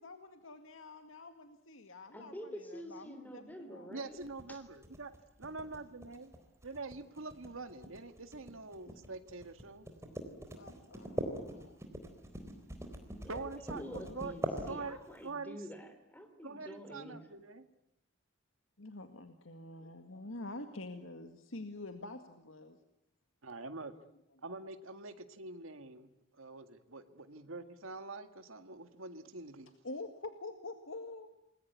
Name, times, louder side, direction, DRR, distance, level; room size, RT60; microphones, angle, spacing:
voice 1, 0.0-3.9 10.5-11.8 13.9-14.1 18.8-22.8 29.8-31.3, left 2 dB, 80° left, 7 dB, 2.0 m, -47 dB
voice 2, 2.1-4.2 4.5-4.6 13.2-17.2, equal, 10° left, 8 dB, 3.3 m, -48 dB
voice 3, 3.9-5.1 5.4-6.3 6.6-9.9 13.3-14.3 14.6-15.6 16.4-17.7 23.4-23.9 24.4-29.7, right 3 dB, 85° right, 9 dB, 2.0 m, -45 dB
sound 1, 4.2-15.2, equal, 15° right, 4.0 m, -42 dB
28.5 x 21.5 x 9.6 m, 0.82 s
head